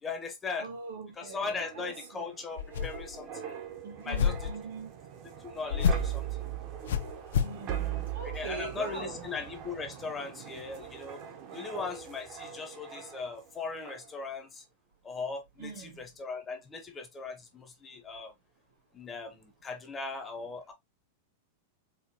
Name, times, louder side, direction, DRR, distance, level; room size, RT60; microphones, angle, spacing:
voice 1, 0.0-0.7 1.2-3.5 4.0-4.5 5.4-6.3 8.2-11.2 11.5-14.6 15.0-18.3 18.9-20.7, left 4 dB, 15° left, 0.6 m, -39 dB
voice 2, 0.6-2.3 3.8-5.0 7.3-9.3 11.5-11.7 15.6-16.1, right 5 dB, 70° right, 2.0 m, -42 dB
sound 1, 1.2-13.5 13.9-14.1, right 10 dB, 30° right, 0.7 m, -40 dB
sound 2, 2.6-3.2 4.1-4.6 5.7-6.2 6.9-7.6, left 7 dB, 85° left, 0.5 m, -29 dB
4.4 x 2.4 x 2.8 m
supercardioid pair, 165°, 0 cm